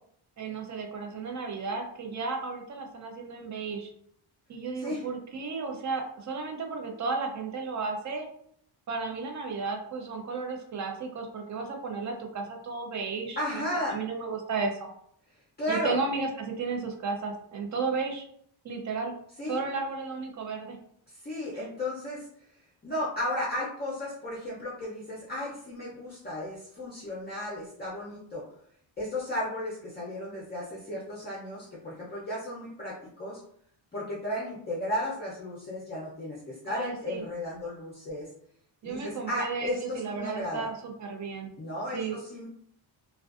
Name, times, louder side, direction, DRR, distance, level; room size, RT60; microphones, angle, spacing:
voice 1, 0.4-3.9 4.5-8.3 8.9-14.9 15.7-18.3 18.6-19.1 19.5-20.8 36.7-37.2 38.8-41.5 41.9-42.2, right 4 dB, 40° right, 3 dB, 0.5 m, -33 dB
voice 2, 13.4-14.0 15.6-16.0 19.4-19.6 21.2-22.2 22.8-28.5 29.0-33.4 33.9-38.3 38.8-40.7 41.6-42.5, left 1 dB, 20° left, -6 dB, 0.5 m, -34 dB
2.4 x 2.2 x 2.4 m, 0.66 s
wide cardioid pair, 145°, 46 cm